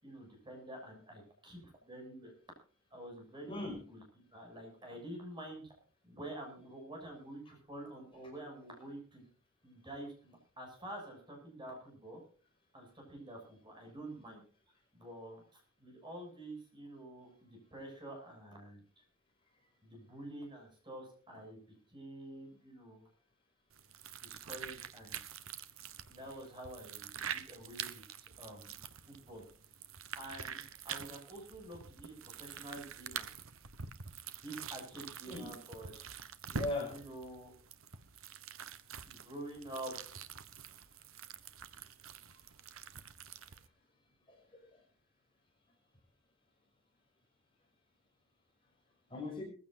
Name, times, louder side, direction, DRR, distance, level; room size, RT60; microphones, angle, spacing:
voice 1, 0.0-2.3 2.9-4.0 4.3-5.7 6.0-9.2 9.6-12.2 12.7-18.8 19.8-21.6 21.9-23.1 24.2-25.2 26.1-28.8 29.0-29.4 30.1-33.3 34.4-35.9 36.9-37.5 39.1-39.9, right 1 dB, 20° right, 1 dB, 7.2 m, -48 dB
voice 2, 3.4-3.8 35.3-35.5 36.5-36.9 42.3-42.4 43.5-43.6 44.3-44.8 49.1-49.4, left 2 dB, 25° left, 0 dB, 5.6 m, -39 dB
sound 1, 23.7-43.7, right 7 dB, 80° right, 1.2 m, -46 dB
21.0 x 15.5 x 2.6 m, 0.41 s
head